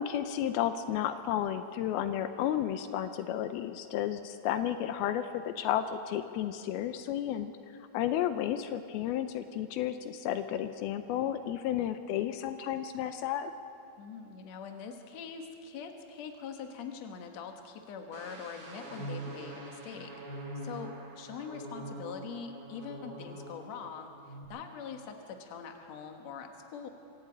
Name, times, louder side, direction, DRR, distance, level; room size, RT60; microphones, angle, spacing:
voice 1, 0.0-7.5 7.9-13.5, left 10 dB, 85° left, 9 dB, 2.6 m, -32 dB
voice 2, 14.0-26.9, left 6 dB, 55° left, 4 dB, 2.2 m, -43 dB
sound 1, 18.1-23.8 24.1-24.4, right 2 dB, 80° right, 7.3 m, -44 dB
25.0 x 12.5 x 8.9 m, 2.6 s
omnidirectional pair, 4.4 m